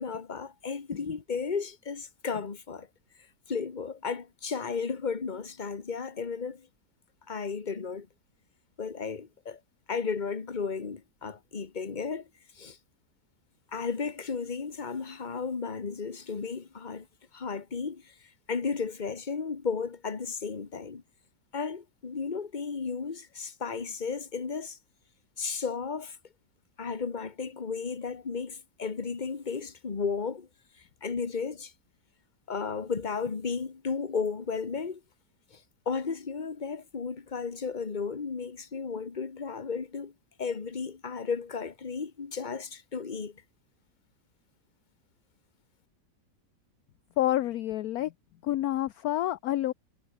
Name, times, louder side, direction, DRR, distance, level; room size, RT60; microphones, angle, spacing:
voice 1, 0.0-2.9 3.5-6.7 7.3-8.1 8.8-9.6 9.9-12.3 12.5-12.8 13.7-17.1 17.3-18.1 18.5-21.0 21.5-24.8 25.4-26.2 26.8-30.5 31.0-31.7 32.5-35.0 35.5-40.1 40.4-43.4, left 5 dB, 25° left, 1.5 m, -34 dB
voice 2, 47.2-48.1 48.4-49.7, left 13 dB, 65° left, 1.0 m, -28 dB
omnidirectional pair, 1.9 m